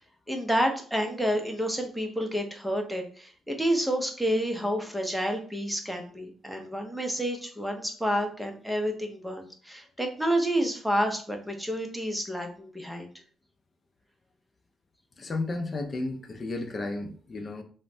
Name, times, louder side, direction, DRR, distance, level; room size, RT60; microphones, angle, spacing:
voice 1, 0.3-13.1, equal, 5° right, 3 dB, 0.7 m, -29 dB
voice 2, 15.2-17.6, left 2 dB, 35° left, 6 dB, 0.5 m, -33 dB
3.1 x 2.1 x 2.6 m, 0.43 s
cardioid pair, 90°, 0 cm